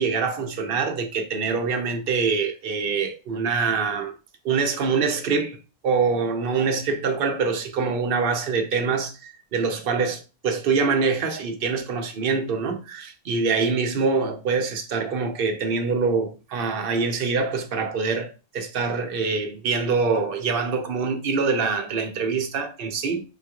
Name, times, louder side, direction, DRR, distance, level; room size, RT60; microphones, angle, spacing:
voice 1, 0.0-4.1 4.4-5.6 5.8-23.2, right 5 dB, 65° right, 0.9 m, -25 dB
5.4 x 2.4 x 2.9 m
omnidirectional pair, 1.0 m